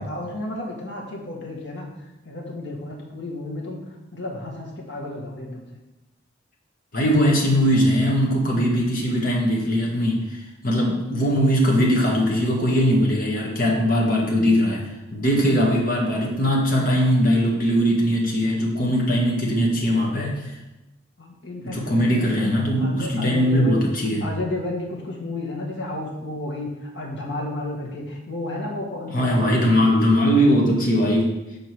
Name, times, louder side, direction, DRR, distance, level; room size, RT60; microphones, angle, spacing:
voice 1, 0.0-1.9 2.3-3.8 4.1-5.7 21.2-22.5 22.8-23.8 24.2-29.7, left 1 dB, 70° left, -2 dB, 1.8 m, -32 dB
voice 2, 6.9-10.4 10.6-14.8 15.1-20.4 21.6-24.3 29.1-31.4, equal, 50° left, -2 dB, 1.7 m, -20 dB
7.0 x 5.2 x 4.7 m, 0.98 s
head